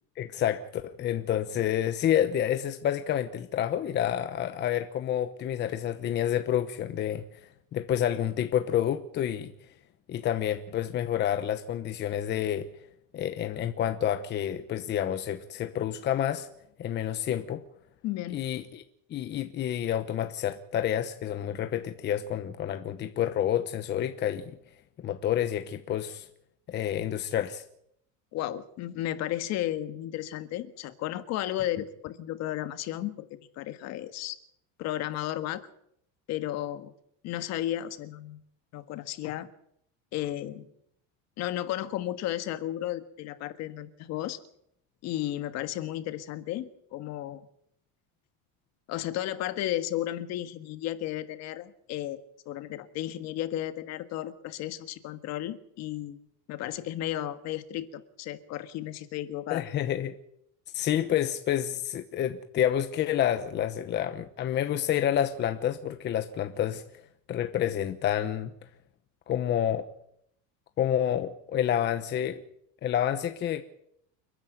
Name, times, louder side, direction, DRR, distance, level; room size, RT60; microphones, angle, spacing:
voice 1, 0.2-7.2 7.7-9.5 10.1-12.7 13.1-16.5 16.8-17.6 18.3-18.8 19.1-24.6 25.0-26.3 26.7-27.6 59.5-60.1 60.7-66.8 67.3-68.5 69.3-69.9 70.8-72.4 72.8-73.6, left 10 dB, 30° left, 1.0 m, -29 dB
voice 2, 18.0-18.4 28.3-33.3 33.5-34.4 34.8-35.7 36.3-36.9 37.2-38.4 38.7-39.5 40.1-40.7 41.4-44.4 45.0-47.5 48.9-56.2 56.5-59.6, left 13 dB, 50° left, 1.6 m, -34 dB
29.0 x 10.0 x 9.2 m
cardioid pair, 165°, 34 cm